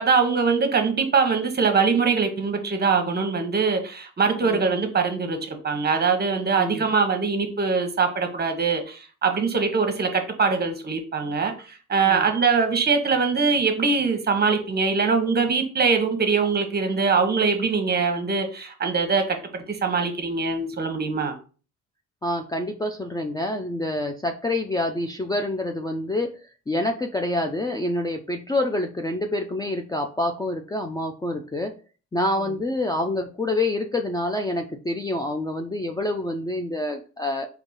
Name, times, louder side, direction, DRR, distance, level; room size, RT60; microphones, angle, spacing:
voice 1, 0.0-21.3, right 5 dB, 35° right, 1.0 m, -23 dB
voice 2, 22.2-26.3 26.7-31.7 32.1-37.5, left 1 dB, 15° left, 0.4 m, -27 dB
3.8 x 2.9 x 3.8 m
cardioid pair, 90°, 30 cm